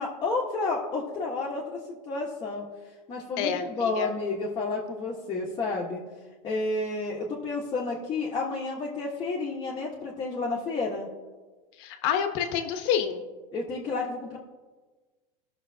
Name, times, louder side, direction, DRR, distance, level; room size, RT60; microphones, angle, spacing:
voice 1, 0.0-2.6 3.1-6.0 6.4-11.1 13.5-14.4, left 3 dB, 25° left, -4 dB, 1.4 m, -31 dB
voice 2, 3.4-4.1 11.8-13.2, left 8 dB, 55° left, 6 dB, 1.3 m, -28 dB
18.0 x 6.6 x 2.8 m, 1.3 s
supercardioid pair, 145°, 18 cm